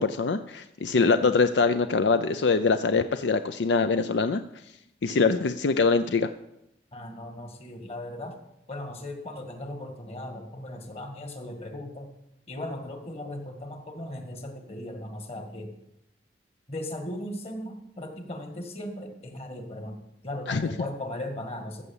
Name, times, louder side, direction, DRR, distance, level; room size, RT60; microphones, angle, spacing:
voice 1, 0.0-4.4 5.0-6.3 20.5-20.6, left 4 dB, 80° left, 10 dB, 0.5 m, -23 dB
voice 2, 6.9-8.4 8.7-12.1 12.5-15.7 16.7-21.8, left 1 dB, 35° left, 5 dB, 1.8 m, -37 dB
14.5 x 7.0 x 7.1 m, 0.83 s
head